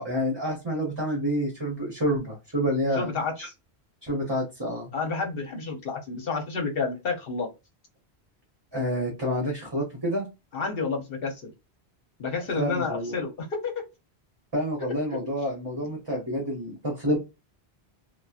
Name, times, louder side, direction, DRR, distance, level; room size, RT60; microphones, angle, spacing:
voice 1, 0.0-3.1 3.4-3.5 4.0-4.9 8.7-10.3 12.6-13.2 14.5-17.2, equal, 25° right, -1 dB, 0.9 m, -28 dB
voice 2, 2.9-3.5 4.9-7.5 10.5-11.5 12.2-13.7, left 4 dB, 60° left, 3 dB, 1.0 m, -30 dB
2.9 x 2.2 x 2.4 m, 0.25 s
omnidirectional pair, 1.1 m